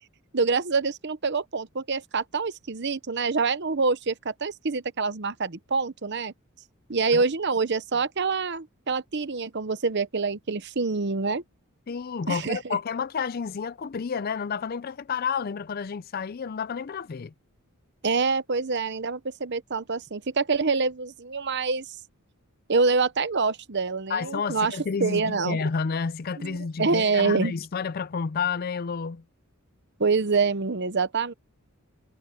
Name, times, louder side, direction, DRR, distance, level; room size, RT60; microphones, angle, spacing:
voice 1, 0.3-6.3 6.9-11.4 12.3-12.8 18.0-22.0 22.7-25.6 26.4-27.5 30.0-31.3, right 4 dB, 50° right, 0.9 m, -26 dB
voice 2, 11.9-17.3 24.1-29.2, left 5 dB, 45° left, 0.4 m, -30 dB
head